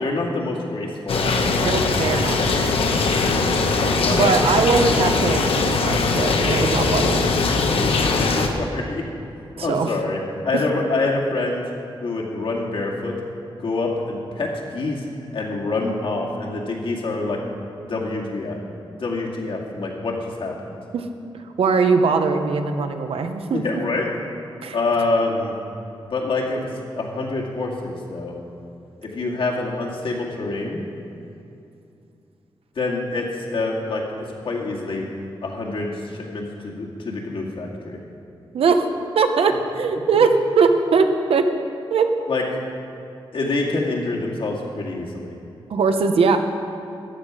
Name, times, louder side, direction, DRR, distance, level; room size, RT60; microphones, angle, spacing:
voice 1, 0.0-1.6 4.0-4.3 7.6-8.1 8.5-9.0 9.6-11.6 12.0-13.2 13.6-15.0 15.3-17.4 17.8-18.6 19.0-20.7 23.5-24.1 24.7-25.5 26.1-26.7 27.0-28.4 29.0-30.8 32.8-35.0 35.4-38.0 40.1-40.3 42.3-42.4 43.3-45.4, left 3 dB, 70° left, -2 dB, 2.2 m, -26 dB
sound 1, 1.1-8.5, left 3 dB, 85° left, 1.1 m, -20 dB
voice 2, 1.6-2.4 4.1-7.2 9.6-9.9 20.9-21.1 21.6-23.6 24.6-24.8 38.5-38.9 39.1-41.4 41.9-42.1 45.7-46.4, right 5 dB, 85° right, 6 dB, 1.0 m, -20 dB
14.0 x 11.0 x 5.0 m, 2.7 s
wide cardioid pair, 135°, 9 cm